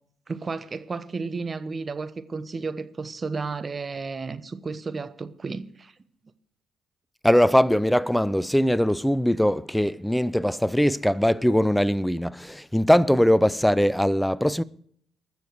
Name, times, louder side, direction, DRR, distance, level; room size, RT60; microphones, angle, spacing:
voice 1, 0.3-5.9, right 4 dB, 35° right, 1.0 m, -33 dB
voice 2, 7.2-14.6, equal, 5° left, 0.5 m, -21 dB
20.5 x 7.0 x 4.8 m
hypercardioid pair, 45°, 0 cm